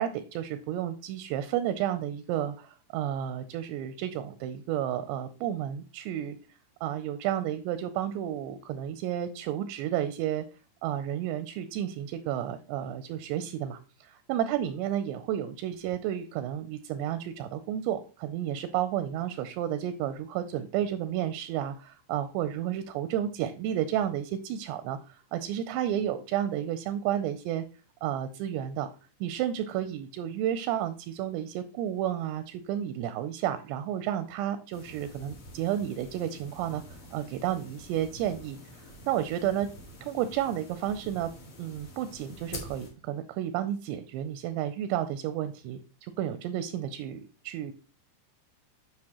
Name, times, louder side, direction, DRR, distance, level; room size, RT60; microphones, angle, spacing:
voice 1, 0.0-6.4 6.8-10.4 10.8-27.6 28.0-28.9 29.2-39.7 40.0-41.3 41.6-47.7, right 11 dB, 85° right, 11 dB, 2.5 m, -32 dB
sound 1, 34.7-42.9, left 1 dB, 55° left, 1.6 m, -47 dB
9.6 x 6.0 x 2.9 m, 0.37 s
omnidirectional pair, 5.4 m